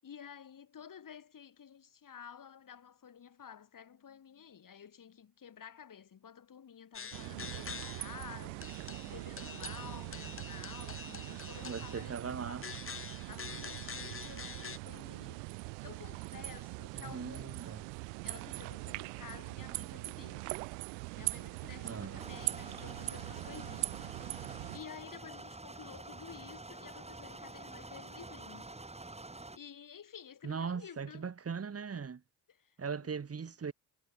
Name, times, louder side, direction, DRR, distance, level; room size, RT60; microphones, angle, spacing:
voice 1, 0.0-8.7 9.1-12.6 13.3-17.9 18.2-20.6 21.2-28.7 29.5-31.3 31.9-32.0 32.5-32.8, left 8 dB, 50° left, 7.0 m, -52 dB
sound 1, 6.9-8.2 8.6-12.1 12.6-14.8, left 6 dB, 30° left, 1.8 m, -46 dB
sound 2, 7.1-24.8, right 39 dB, 80° right, 0.7 m, -42 dB
voice 2, 11.6-12.7 16.9-17.8 21.8-22.2 30.4-32.2 32.8-33.7, right 6 dB, 35° right, 2.7 m, -39 dB
sound 3, 22.2-29.6, right 2 dB, 15° right, 4.3 m, -48 dB
hypercardioid pair, 60°, 43 cm